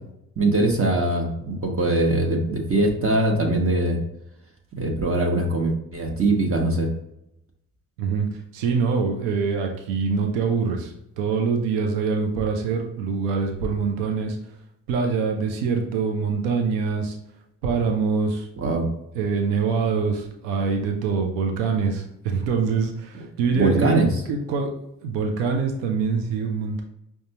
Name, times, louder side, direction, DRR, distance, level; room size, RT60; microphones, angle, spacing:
voice 1, 0.4-4.0 4.7-6.9 18.6-18.9 23.5-24.1, right 2 dB, 35° right, 1 dB, 0.9 m, -22 dB
voice 2, 8.5-14.4 14.9-17.2 17.6-18.5 19.1-24.0 24.3-24.7 25.0-26.8, right 5 dB, 85° right, 3 dB, 0.6 m, -24 dB
5.1 x 2.3 x 2.8 m, 0.80 s
hypercardioid pair, 45°, 39 cm